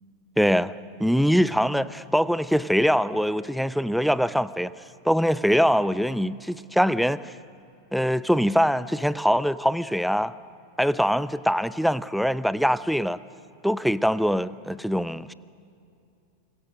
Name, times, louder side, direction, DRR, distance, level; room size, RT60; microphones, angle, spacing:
voice 1, 0.4-0.7 1.0-4.7 5.0-7.2 7.9-10.3 10.8-13.2 13.6-15.3, equal, ahead, 17 dB, 0.6 m, -23 dB
27.0 x 23.5 x 6.5 m, 2.5 s
figure-of-eight pair, 90°, 0 cm